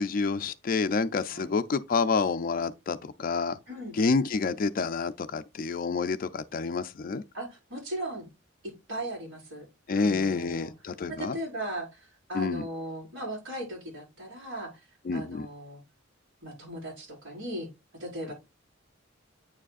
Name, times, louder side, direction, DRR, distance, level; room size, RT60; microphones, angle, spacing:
voice 1, 0.0-3.6 4.0-7.2 9.9-11.4 12.3-12.6 15.1-15.5, left 4 dB, 45° left, 0.4 m, -28 dB
voice 2, 7.3-8.3 8.9-9.6 9.9-10.7 11.1-14.8 15.1-15.8 16.4-17.7 18.0-18.3, right 1 dB, 85° right, 4.8 m, -37 dB
8.7 x 4.9 x 2.4 m
head